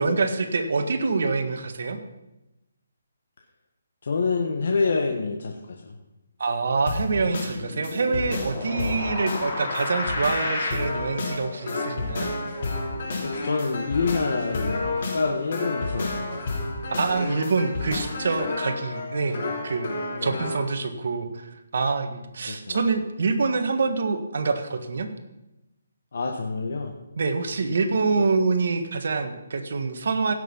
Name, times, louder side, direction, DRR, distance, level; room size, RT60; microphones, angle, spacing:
voice 1, 0.0-2.0 6.4-12.3 17.0-19.9 20.2-25.1 27.2-30.3, right 4 dB, 60° right, 6 dB, 1.6 m, -26 dB
voice 2, 4.0-6.0 8.7-9.1 13.0-16.6 20.1-20.5 22.4-22.8 26.1-26.9 28.2-28.3, left 4 dB, 60° left, 2 dB, 1.4 m, -27 dB
sound 1, 6.9-20.7, left 2 dB, 45° left, 3.3 m, -30 dB
16.0 x 6.5 x 5.6 m, 0.97 s
hypercardioid pair, 165°, 0 cm